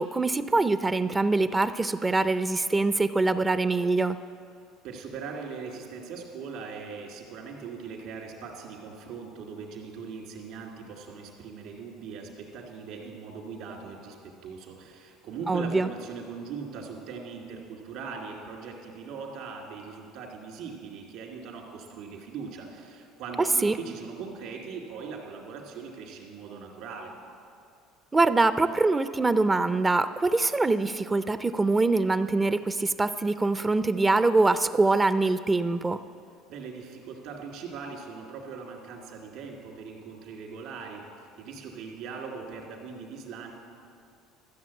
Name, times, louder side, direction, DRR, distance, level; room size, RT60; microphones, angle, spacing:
voice 1, 0.0-4.2 15.5-15.9 23.6-23.8 28.1-36.0, right 3 dB, 15° right, 12 dB, 0.4 m, -24 dB
voice 2, 4.8-27.1 36.5-43.5, right 5 dB, 70° right, 0 dB, 2.5 m, -40 dB
13.5 x 7.0 x 8.3 m, 2.4 s
supercardioid pair, 95°, 0 cm